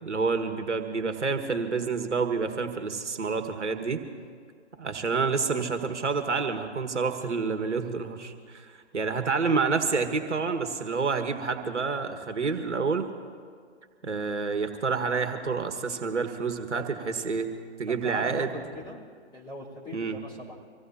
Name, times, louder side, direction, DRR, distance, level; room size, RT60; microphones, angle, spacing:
voice 1, 0.0-4.0 4.8-13.1 14.0-17.5 17.8-18.5 19.9-20.2, right 4 dB, 75° right, 7 dB, 1.6 m, -28 dB
voice 2, 17.9-19.0 19.3-20.6, equal, 15° left, -6 dB, 4.1 m, -40 dB
26.0 x 16.5 x 2.8 m, 2.1 s
figure-of-eight pair, 140°, 35 cm